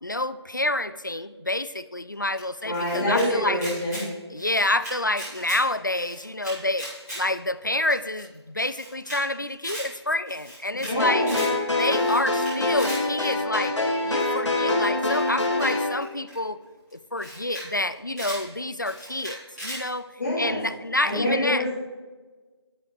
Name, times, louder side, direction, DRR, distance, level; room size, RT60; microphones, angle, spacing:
voice 1, 0.0-3.6 4.3-6.9 7.2-11.3 11.8-13.8 14.0-16.6 16.9-20.1 20.4-21.7, left 1 dB, 45° left, 15 dB, 0.4 m, -28 dB
Camera, 2.4-3.2 3.5-4.0 4.3-5.6 5.9-7.2 7.5-7.6 7.9-8.0 8.2-8.3 8.6-9.2 9.5-9.8 10.2-10.9 11.2-11.5 11.9-13.0 14.2-14.4 15.1-16.3 16.9-17.0 17.1-17.6 17.9-18.4 18.8-19.8, equal, ahead, 1.0 m, -38 dB
voice 2, 2.6-4.0 10.7-11.4 20.2-20.6 21.0-21.7, left 1 dB, 25° left, -12 dB, 3.4 m, -26 dB
sound 1, 11.0-15.9, left 2 dB, 85° left, 2.5 m, -25 dB
12.0 x 7.8 x 4.8 m, 1.3 s
figure-of-eight pair, 180°, 15 cm